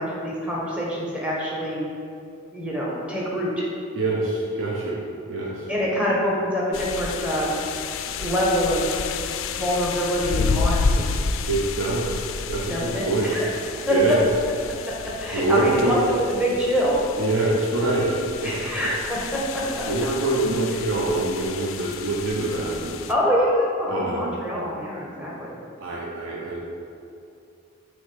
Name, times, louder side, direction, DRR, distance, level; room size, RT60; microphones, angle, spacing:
voice 1, 0.0-1.8 2.5-3.6 5.7-7.6 8.2-9.0 9.5-11.1 12.7-13.5 13.9-14.0 14.8-14.9 15.2-17.0 18.4-19.9 23.1-25.5, equal, 5° right, -6 dB, 1.0 m, -25 dB
voice 2, 3.9-5.0 5.3-5.6 11.5-13.3 13.9-14.2 15.3-16.0 17.2-18.5 19.8-22.9 23.9-24.3 25.8-26.6, right 2 dB, 70° right, -5 dB, 0.7 m, -25 dB
sound 1, 6.7-23.1, left 5 dB, 70° left, 0.3 m, -30 dB
6.3 x 3.2 x 4.9 m, 2.5 s
head